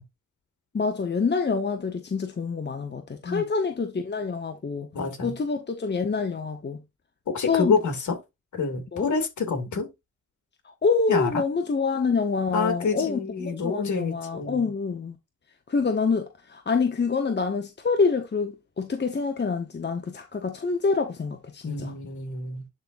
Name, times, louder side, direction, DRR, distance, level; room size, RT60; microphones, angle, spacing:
voice 1, 0.7-4.9 5.2-6.8 7.5-7.7 8.9-9.1 10.8-15.2 15.7-21.9, left 4 dB, 30° left, 1.2 m, -26 dB
voice 2, 4.9-5.3 7.3-8.2 8.5-9.9 11.1-11.4 12.5-14.7 21.6-22.6, left 4 dB, 55° left, 2.8 m, -27 dB
11.0 x 4.0 x 2.7 m
supercardioid pair, 55°, 35 cm